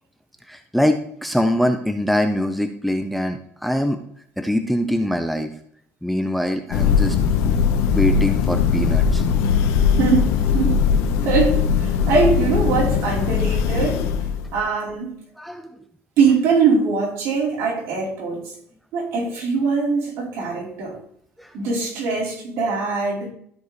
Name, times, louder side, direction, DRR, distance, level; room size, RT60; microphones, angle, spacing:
voice 1, 0.5-4.0 4.4-5.5 6.0-7.2 7.9-9.2 15.4-15.7 21.4-21.5, equal, ahead, 7 dB, 0.4 m, -23 dB
Thunder, 6.7-14.6, left 6 dB, 80° left, 0.9 m, -20 dB
voice 2, 10.0-10.7 11.2-14.0 14.5-15.1 16.2-18.4 18.9-20.9 21.5-23.3, right 5 dB, 60° right, -3 dB, 3.8 m, -22 dB
13.0 x 4.8 x 4.0 m, 0.65 s
cardioid pair, 170°, 5 cm